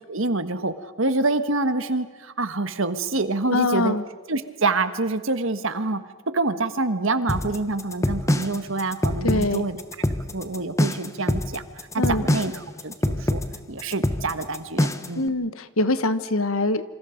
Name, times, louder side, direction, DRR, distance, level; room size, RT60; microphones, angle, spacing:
voice 1, 0.1-3.9 4.3-6.0 6.3-9.8 10.3-11.6 11.9-12.5 12.8-13.4 13.7-15.3, right 3 dB, 60° right, 10 dB, 1.5 m, -26 dB
voice 2, 3.5-4.0 9.2-9.7 12.0-12.2 15.2-16.8, left 2 dB, 70° left, 12 dB, 1.4 m, -23 dB
sound 1, 7.3-15.2, left 1 dB, 15° left, 1.0 m, -25 dB
27.5 x 26.5 x 5.2 m, 1.4 s
head